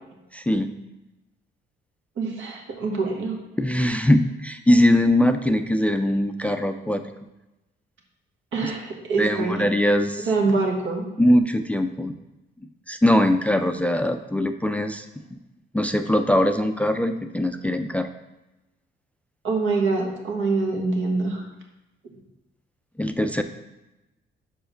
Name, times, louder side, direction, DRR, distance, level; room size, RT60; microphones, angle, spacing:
voice 1, 0.3-0.8 3.6-7.0 8.6-8.7 9.2-10.3 11.2-12.1 12.9-15.1 15.3-15.4 15.7-18.1 23.0-23.4, left 1 dB, 5° left, 8 dB, 0.3 m, -21 dB
voice 2, 2.2-3.4 8.5-9.7 10.2-11.1 19.4-21.4, right 3 dB, 75° right, 0 dB, 1.4 m, -25 dB
5.1 x 4.8 x 5.0 m, 0.99 s
cardioid pair, 90°, 20 cm